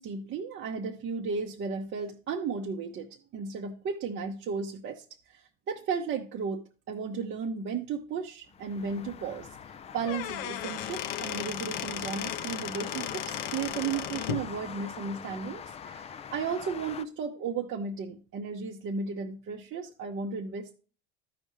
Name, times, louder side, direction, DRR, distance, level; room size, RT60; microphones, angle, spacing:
voice 1, 0.0-6.6 6.9-20.8, right 5 dB, 35° right, 0.8 m, -34 dB
sound 1, 8.5-17.0, left 7 dB, 20° left, 0.3 m, -43 dB
Squeak / Wood, 9.9-14.5, left 12 dB, 55° left, 0.7 m, -36 dB
13.5 x 5.3 x 3.1 m
hypercardioid pair, 80°, 36 cm